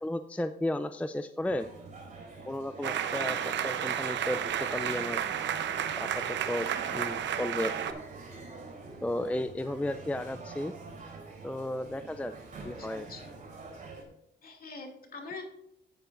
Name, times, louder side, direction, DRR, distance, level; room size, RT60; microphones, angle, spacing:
voice 1, 0.0-1.7 2.5-5.2 6.0-8.0 9.0-10.7 11.4-12.3 12.6-13.1, left 1 dB, 5° left, 11 dB, 0.4 m, -34 dB
sound 1, 1.4-14.0, right 3 dB, 40° right, 3.9 m, -46 dB
sound 2, 2.8-7.9, right 9 dB, 65° right, 0.8 m, -32 dB
voice 2, 12.8-13.2 14.4-15.4, left 4 dB, 50° left, 2 dB, 2.5 m, -44 dB
12.5 x 8.8 x 2.6 m, 0.81 s
cardioid pair, 90°, 20 cm